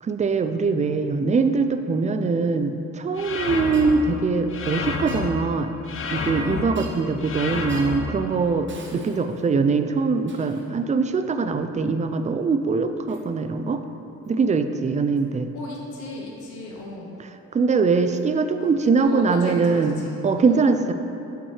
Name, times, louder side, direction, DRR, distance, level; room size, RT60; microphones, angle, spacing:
voice 1, 0.0-5.7 6.1-13.8 14.3-15.5 17.5-20.9, right 4 dB, 25° right, 9 dB, 0.4 m, -22 dB
sound 1, 3.2-3.9 4.5-5.3 5.9-6.6 7.2-8.0, left 4 dB, 45° left, 0.8 m, -29 dB
Shatter, 3.7-3.9 5.1-5.3 6.7-7.2 7.7-8.0 8.7-9.5 10.3-10.7 13.1-13.3 14.2-14.4 15.2-15.3 18.1-18.2 19.3-19.4, right 4 dB, 40° right, 0.9 m, -45 dB
voice 2, 15.5-17.1 18.6-20.6, left 2 dB, 80° left, -2 dB, 1.0 m, -35 dB
8.5 x 5.3 x 3.3 m, 2.9 s
cardioid pair, 90°, 30 cm